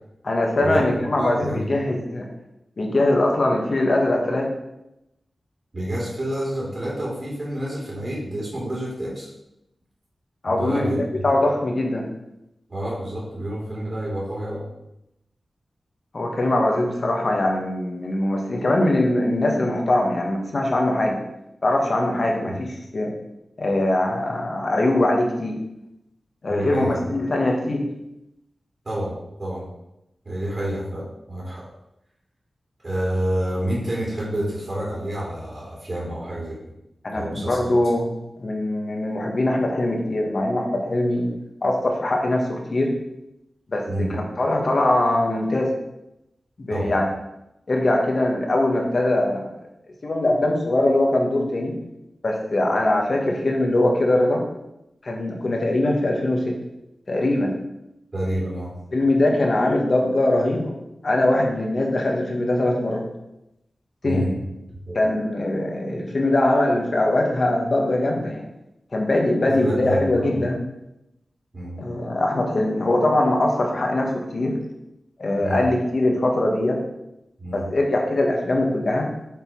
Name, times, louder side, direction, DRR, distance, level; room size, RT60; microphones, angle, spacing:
voice 1, 0.2-2.3 2.8-4.5 10.4-10.9 11.2-12.1 16.1-21.2 21.6-23.1 23.6-25.6 26.4-27.9 37.0-38.1 38.4-41.3 41.6-42.9 43.7-45.7 46.6-47.1 47.7-49.5 50.0-51.8 52.2-54.4 55.0-56.6 57.1-57.5 58.9-60.7 61.0-63.1 64.0-64.3 64.9-68.4 68.9-70.6 71.8-74.6 75.2-76.8 77.5-79.1, left 1 dB, 55° left, 1 dB, 1.4 m, -22 dB
voice 2, 1.1-1.7 5.7-9.3 10.5-11.2 12.7-14.7 22.5-22.6 26.5-26.9 28.8-29.1 29.4-29.7 30.2-31.7 32.8-36.6 37.1-37.7 43.9-44.2 46.7-47.0 58.1-58.7 64.0-64.4 64.9-65.0 69.5-70.3 71.5-71.9 75.4-75.7 77.4-77.7, right 1 dB, 45° right, -6 dB, 2.6 m, -28 dB
6.5 x 3.8 x 4.8 m, 0.87 s
wide cardioid pair, 65°, 0 cm